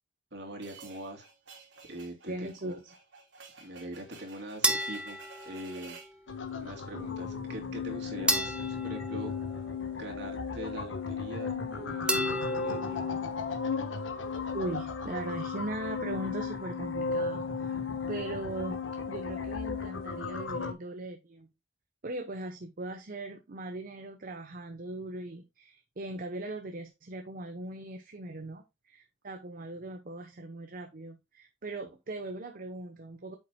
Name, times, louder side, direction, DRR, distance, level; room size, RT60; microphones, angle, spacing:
voice 1, 0.3-1.3 1.8-2.8 3.6-5.2 5.4-6.0 6.6-9.3 10.0-13.1, right 1 dB, 65° right, 2 dB, 2.9 m, -42 dB
sound 1, 0.6-6.2, right 4 dB, 80° right, 2.8 m, -52 dB
voice 2, 2.3-2.9 14.5-18.8 19.1-21.5 22.0-33.4, right 2 dB, 50° right, 6 dB, 0.8 m, -39 dB
sound 2, 4.6-6.1 8.3-10.1 12.1-13.2, right 1 dB, 5° right, 0.9 m, -32 dB
sound 3, 6.3-20.7, left 5 dB, 90° left, 1.2 m, -35 dB
8.5 x 7.2 x 2.2 m, 0.23 s
head